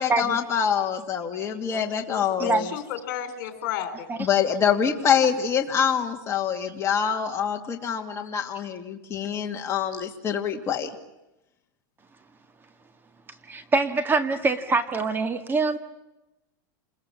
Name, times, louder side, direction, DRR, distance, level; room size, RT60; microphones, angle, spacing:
voice 1, 0.0-2.7 4.2-10.9, left 7 dB, 25° left, 2 dB, 2.5 m, -25 dB
voice 2, 1.7-4.1 9.9-10.0, left 10 dB, 60° left, 9 dB, 4.2 m, -33 dB
voice 3, 13.5-15.8, right 3 dB, 20° right, 8 dB, 1.8 m, -24 dB
28.5 x 21.5 x 7.5 m, 0.95 s
supercardioid pair, 135°, 11 cm